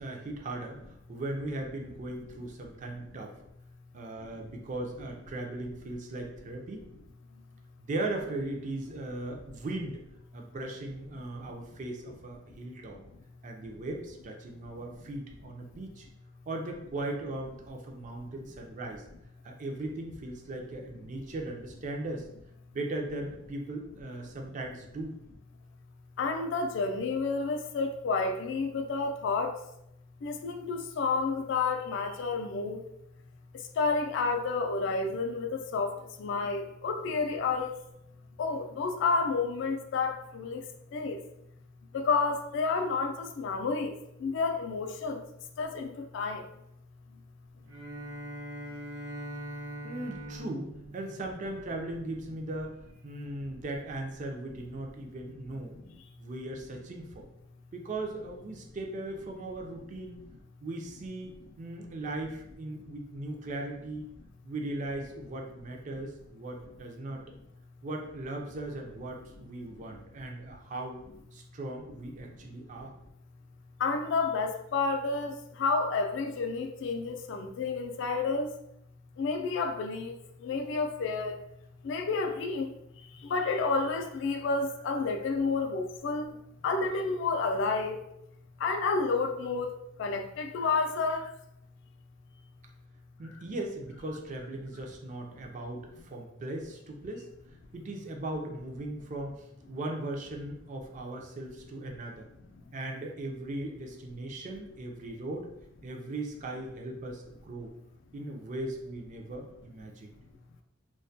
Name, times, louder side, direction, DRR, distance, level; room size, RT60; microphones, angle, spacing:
voice 1, 0.0-3.4 3.9-6.9 7.8-10.0 10.3-13.0 13.4-16.1 16.5-19.0 19.4-22.3 22.7-25.2 49.8-55.8 56.2-57.3 57.7-60.2 60.6-64.1 64.4-67.2 67.8-71.0 71.3-72.9 93.2-97.3 97.7-102.3 102.7-105.5 105.8-107.7 108.1-110.1, right 2 dB, 40° right, 1 dB, 0.4 m, -38 dB
voice 2, 26.2-29.6 30.2-32.8 33.5-37.7 38.4-40.6 40.9-41.2 41.9-45.2 45.6-46.5 55.9-56.0 69.9-70.0 73.8-78.5 79.2-81.4 81.8-88.0 88.6-91.3, left 4 dB, 65° left, 5 dB, 0.3 m, -30 dB
Bowed string instrument, 47.6-52.1, right 1 dB, 80° right, 0.7 m, -42 dB
2.2 x 2.1 x 2.6 m, 0.80 s
head